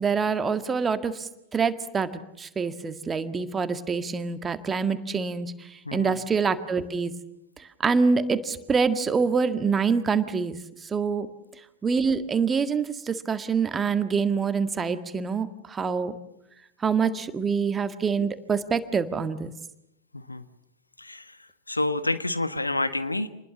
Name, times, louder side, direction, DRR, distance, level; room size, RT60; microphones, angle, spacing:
voice 1, 0.0-5.5 5.9-7.1 7.8-10.6 10.9-11.3 11.8-16.1 16.8-19.5, right 5 dB, 20° right, 11 dB, 1.8 m, -25 dB
voice 2, 20.1-20.4 21.0-23.3, left 2 dB, 85° left, 12 dB, 1.4 m, -29 dB
28.0 x 21.0 x 7.1 m, 0.84 s
figure-of-eight pair, 90°, 0 cm